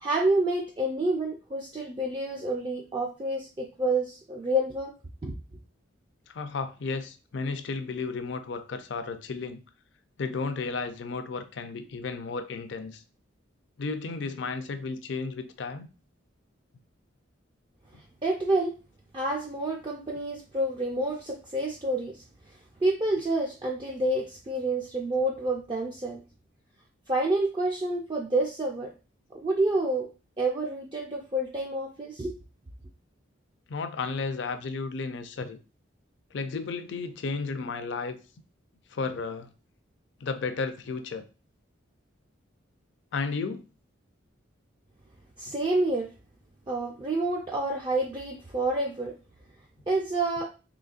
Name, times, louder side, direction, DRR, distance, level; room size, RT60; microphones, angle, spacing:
voice 1, 0.0-4.9 5.2-5.3 18.2-18.7 19.1-22.2 22.8-26.2 27.1-28.9 29.3-30.1 30.4-32.3 45.4-46.1 46.7-49.1 49.9-50.5, right 2 dB, 25° right, 0.4 m, -28 dB
voice 2, 6.3-9.6 10.2-13.0 13.8-15.9 17.9-18.0 33.7-35.6 36.3-38.2 38.9-39.5 40.2-41.3 43.1-43.6, left 4 dB, 65° left, 0.4 m, -33 dB
3.9 x 3.0 x 2.4 m
head